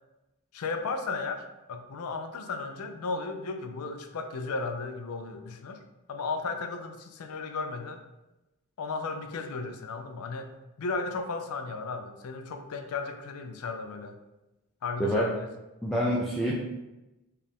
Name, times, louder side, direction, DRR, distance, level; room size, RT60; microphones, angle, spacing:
voice 1, 0.5-1.4 1.7-5.8 6.1-8.0 8.8-10.5 10.8-14.1 14.8-15.5, left 4 dB, 90° left, 7 dB, 0.5 m, -35 dB
voice 2, 15.8-16.5, equal, ahead, -5 dB, 0.4 m, -26 dB
4.4 x 2.4 x 3.5 m, 1.0 s
head